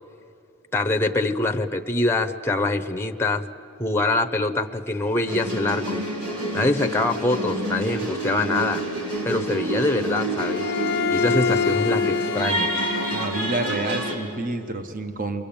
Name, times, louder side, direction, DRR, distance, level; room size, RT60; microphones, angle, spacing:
voice 1, 0.7-3.4 3.8-6.0 6.5-8.8 9.2-10.7 11.1-12.7, left 2 dB, 10° left, 7 dB, 0.9 m, -24 dB
sound 1, 5.3-14.2, right 1 dB, 85° right, 4.9 m, -28 dB
Bowed string instrument, 10.4-13.8, left 6 dB, 45° left, 0.7 m, -26 dB
voice 2, 13.1-15.5, right 2 dB, 40° right, 7 dB, 1.1 m, -29 dB
29.0 x 22.0 x 8.8 m, 2.7 s
head